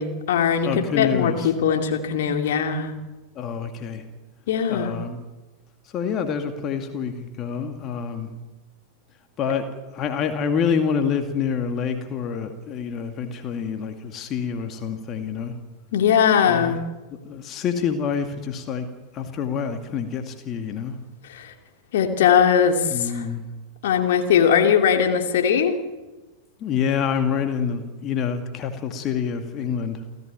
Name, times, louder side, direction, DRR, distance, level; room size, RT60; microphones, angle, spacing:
voice 1, 0.0-2.9 4.5-5.0 15.9-16.8 21.3-21.5 21.9-23.2 23.8-25.8, left 7 dB, 55° left, 4 dB, 2.5 m, -20 dB
voice 2, 0.6-1.5 3.4-4.0 4.7-5.2 5.9-8.3 9.4-15.5 16.5-16.8 17.3-18.9 19.1-21.0 22.9-23.5 26.6-30.0, left 7 dB, 30° left, 6 dB, 2.2 m, -27 dB
29.0 x 15.0 x 9.1 m, 1.2 s
figure-of-eight pair, 90°, 0 cm